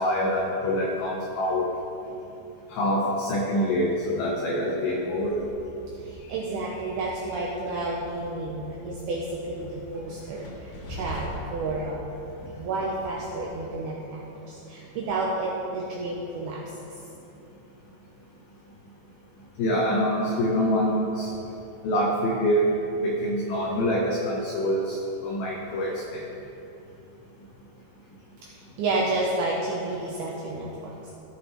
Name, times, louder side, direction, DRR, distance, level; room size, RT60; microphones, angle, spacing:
voice 1, 0.0-1.7 2.7-5.5 12.4-12.5 19.6-21.3 21.8-26.3, equal, 90° left, -2 dB, 2.1 m, -25 dB
Train, 5.2-13.5, equal, 70° left, 3.2 m, -43 dB
voice 2, 6.0-12.0 12.6-16.9 28.4-31.1, right 2 dB, 85° right, -4 dB, 2.3 m, -31 dB
16.0 x 6.4 x 3.2 m, 2.9 s
omnidirectional pair, 5.5 m